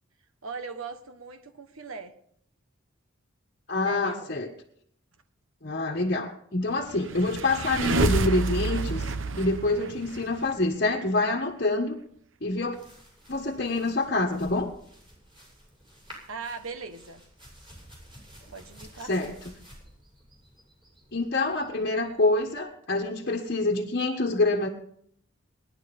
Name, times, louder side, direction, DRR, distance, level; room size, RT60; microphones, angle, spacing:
voice 1, 0.4-2.1 3.8-4.3 9.7-9.9 16.3-17.2 18.5-19.1, right 4 dB, 80° right, 7 dB, 1.4 m, -39 dB
voice 2, 3.7-4.5 5.6-12.0 12.4-12.8 13.3-14.7 19.0-19.3 21.1-24.7, left 2 dB, 45° left, 0 dB, 1.4 m, -26 dB
sound 1, 6.9-10.5, right 3 dB, 65° right, 1.0 m, -28 dB
sound 2, 12.6-22.6, equal, 25° right, 7.6 m, -52 dB
19.5 x 11.0 x 5.4 m, 0.68 s
head